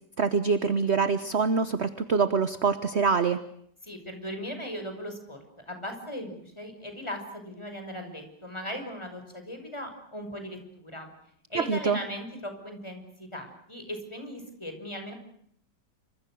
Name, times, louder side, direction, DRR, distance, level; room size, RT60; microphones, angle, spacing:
voice 1, 0.2-3.4 11.5-12.0, right 5 dB, 45° right, 12 dB, 1.3 m, -25 dB
voice 2, 3.8-5.4 5.7-11.1 11.5-15.1, equal, 15° left, 5 dB, 6.1 m, -38 dB
28.0 x 26.0 x 6.4 m, 0.69 s
omnidirectional pair, 1.8 m